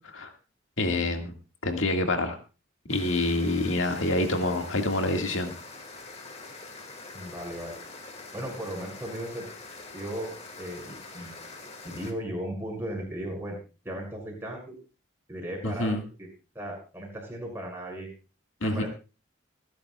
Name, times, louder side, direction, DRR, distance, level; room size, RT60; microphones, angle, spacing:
voice 1, 0.8-1.3 1.6-2.4 2.9-5.5 15.6-16.0 18.6-18.9, left 2 dB, 90° left, 4 dB, 2.0 m, -26 dB
sound 1, 2.9-12.1, left 3 dB, 35° left, 2.1 m, -44 dB
voice 2, 7.1-7.8 8.3-9.4 9.9-11.3 11.8-13.6 13.8-14.8 15.3-15.9 16.2-16.3 16.5-18.1 18.6-18.9, right 1 dB, 10° right, -1 dB, 5.9 m, -36 dB
30.0 x 10.5 x 2.4 m, 0.33 s
head